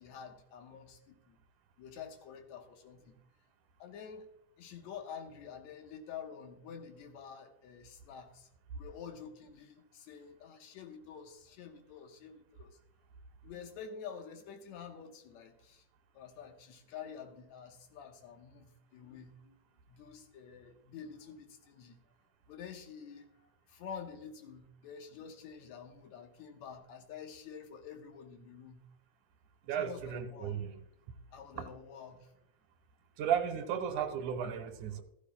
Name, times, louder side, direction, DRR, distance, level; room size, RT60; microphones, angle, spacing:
voice 1, 0.0-1.4 1.8-3.2 3.8-4.3 4.6-8.5 8.7-12.8 13.4-15.8 16.1-19.6 19.9-22.0 22.5-28.8 29.8-30.6 31.3-32.3, left 7 dB, 70° left, 4 dB, 2.4 m, -48 dB
voice 2, 29.7-30.8 31.5-31.6 33.2-35.0, right 8 dB, 80° right, 7 dB, 2.5 m, -34 dB
15.5 x 14.0 x 2.2 m, 0.82 s
omnidirectional pair, 3.5 m